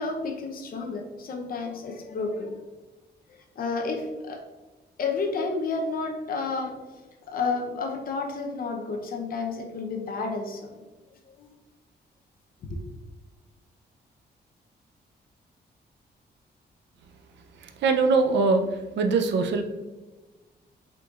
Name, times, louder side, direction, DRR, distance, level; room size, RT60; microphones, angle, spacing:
voice 1, 0.0-2.6 3.6-4.4 5.0-6.8 7.3-10.8 11.4-11.5 12.7-12.8, left 4 dB, 55° left, 3 dB, 0.7 m, -31 dB
voice 2, 17.8-18.6 19.0-19.6, right 4 dB, 90° right, 6 dB, 0.6 m, -21 dB
5.6 x 3.9 x 2.4 m, 1.2 s
wide cardioid pair, 145°, 18 cm